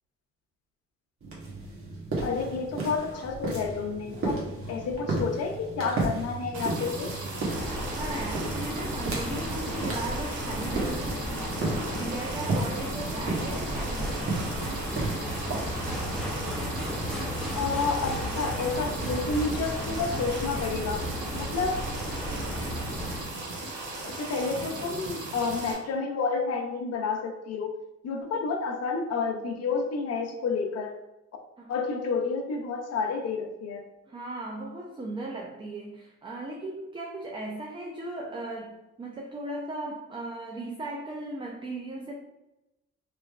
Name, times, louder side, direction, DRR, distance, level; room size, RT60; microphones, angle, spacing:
sound 1, 1.2-18.7, right 2 dB, 45° right, 1.2 m, -35 dB
voice 1, 2.2-4.4 4.7-7.2 17.6-21.0 21.3-21.8 24.0-27.8 28.0-31.0 31.7-33.8, left 4 dB, 55° left, 3 dB, 0.6 m, -30 dB
sound 2, 6.5-25.7, right 2 dB, 85° right, 0.8 m, -37 dB
sound 3, 7.4-23.2, equal, ahead, 0.7 m, -34 dB
voice 2, 7.7-14.4 31.6-31.7 34.1-42.2, right 2 dB, 15° right, 0 dB, 0.4 m, -37 dB
3.2 x 3.0 x 2.4 m, 0.95 s
cardioid pair, 90°, 30 cm